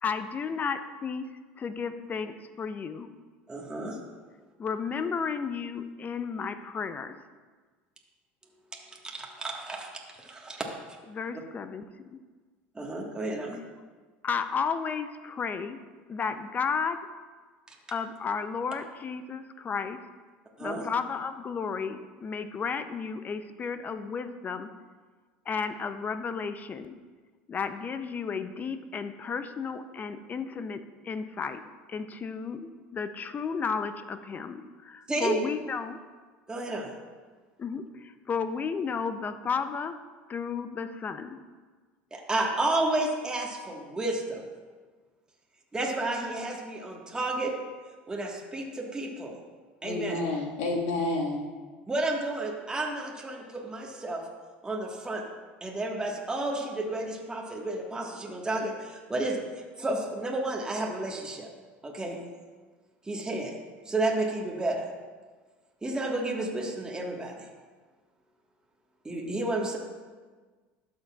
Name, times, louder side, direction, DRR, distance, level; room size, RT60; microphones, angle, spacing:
voice 1, 0.0-3.1 4.6-7.1 11.1-12.2 14.2-15.8 16.1-17.0 17.9-20.0 20.6-24.7 25.5-27.0 27.5-31.6 31.9-36.0 37.6-40.0 40.3-41.4, left 5 dB, 30° left, 10 dB, 0.5 m, -33 dB
voice 2, 3.5-4.0 8.9-10.7 12.7-13.6 17.7-17.8 20.6-20.8 35.1-35.3 36.5-36.9 42.1-44.4 45.7-47.5 48.1-49.3 49.8-50.2 51.8-54.2 54.6-55.2 55.6-61.5 61.8-62.2 63.0-63.5 63.8-64.9 65.8-67.5 69.0-69.8, right 2 dB, 15° right, -1 dB, 1.5 m, -31 dB
voice 3, 49.8-51.4, left 2 dB, 70° left, -1 dB, 1.6 m, -29 dB
12.0 x 6.6 x 2.4 m, 1.4 s
hypercardioid pair, 85°, 5 cm